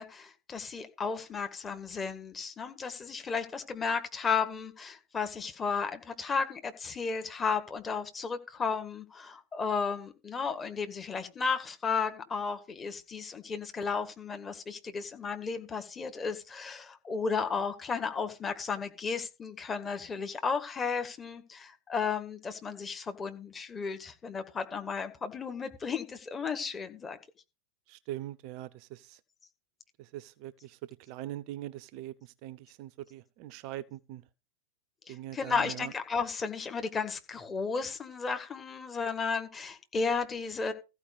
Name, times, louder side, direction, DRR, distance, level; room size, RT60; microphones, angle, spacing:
voice 1, 0.0-27.2 35.1-40.7, left 5 dB, 20° left, 1.8 m, -34 dB
voice 2, 27.9-29.2 30.0-30.8 31.1-34.2 35.1-35.9, right 14 dB, 45° right, 0.6 m, -42 dB
14.5 x 4.9 x 6.7 m
figure-of-eight pair, 90°, 0 cm